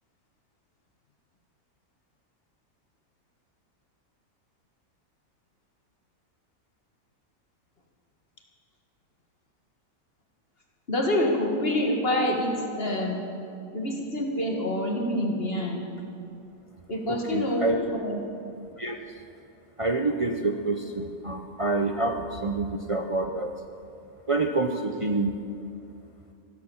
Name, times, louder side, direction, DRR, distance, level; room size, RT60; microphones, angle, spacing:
voice 1, 10.9-13.2 13.7-15.8 16.9-17.7 18.0-18.2, left 1 dB, 45° left, 1 dB, 2.0 m, -26 dB
voice 2, 17.1-17.9 18.8-19.0 19.8-23.5 24.3-25.3, right 2 dB, 35° right, 4 dB, 0.5 m, -27 dB
14.5 x 12.5 x 7.1 m, 2.5 s
omnidirectional pair, 1.5 m